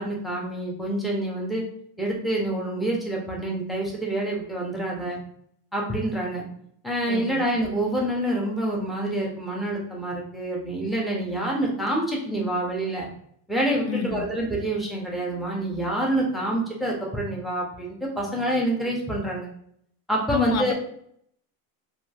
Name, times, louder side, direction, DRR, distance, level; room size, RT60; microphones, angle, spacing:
voice 1, 0.0-1.6 2.0-5.2 5.7-6.4 6.8-13.1 13.5-19.5 20.1-20.7, right 1 dB, ahead, -3 dB, 0.6 m, -27 dB
voice 2, 7.1-7.4 13.8-14.3 20.3-20.7, left 7 dB, 40° left, 7 dB, 0.5 m, -28 dB
2.9 x 2.6 x 2.3 m, 0.67 s
supercardioid pair, 125°, 42 cm